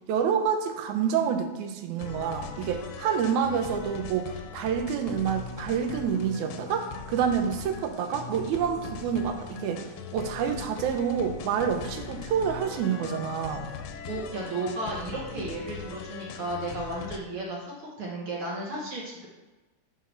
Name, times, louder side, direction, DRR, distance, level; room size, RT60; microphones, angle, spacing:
voice 1, 0.1-9.8 10.1-13.7, right 7 dB, 75° right, 6 dB, 2.1 m, -28 dB
sound 1, 2.0-17.2, left 6 dB, 85° left, 2.1 m, -40 dB
voice 2, 14.1-19.3, right 2 dB, 55° right, -4 dB, 1.7 m, -34 dB
5.6 x 4.9 x 5.6 m, 1.1 s
omnidirectional pair, 3.5 m